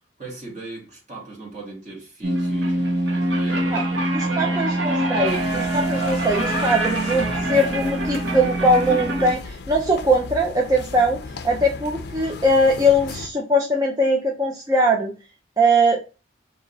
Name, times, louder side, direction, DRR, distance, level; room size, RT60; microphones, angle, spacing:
voice 1, 0.2-4.8, right 3 dB, 40° right, 2.1 m, -38 dB
sound 1, 2.2-9.3, right 1 dB, 85° right, 1.2 m, -24 dB
voice 2, 4.1-15.1 15.6-16.0, equal, 20° right, 0.5 m, -21 dB
sound 2, 5.3-13.3, left 4 dB, 60° left, 0.5 m, -36 dB
4.0 x 2.9 x 3.9 m
head